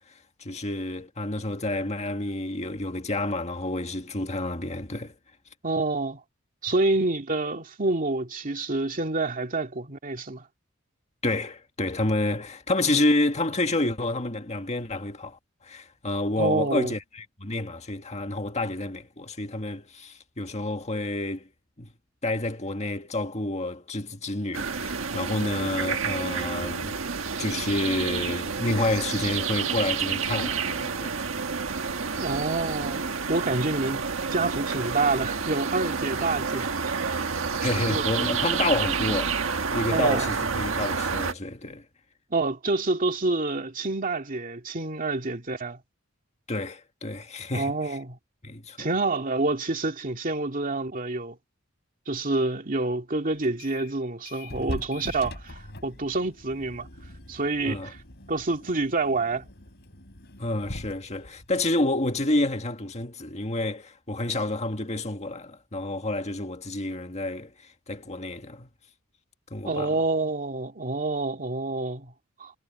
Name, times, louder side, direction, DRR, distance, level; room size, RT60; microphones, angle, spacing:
voice 1, 0.4-5.1 11.2-21.5 21.8-21.9 22.2-27.0 27.4-31.2 37.6-41.8 46.5-48.0 48.4-48.9 57.6-57.9 60.4-68.7 69.5-70.0, left 2 dB, 35° left, 1.8 m, -29 dB
voice 2, 5.6-6.2 6.6-10.4 16.4-16.9 32.2-34.0 34.3-37.3 37.9-38.0 39.9-40.3 42.3-45.8 47.5-48.2 48.8-51.4 52.1-55.5 55.8-56.9 57.3-58.0 58.3-59.4 69.6-72.1 72.4-72.5, right 3 dB, 40° right, 2.4 m, -27 dB
sound 1, 24.5-41.3, right 5 dB, 75° right, 1.5 m, -29 dB
sound 2, 53.4-53.9 54.3-62.7, left 1 dB, 55° left, 3.9 m, -42 dB
head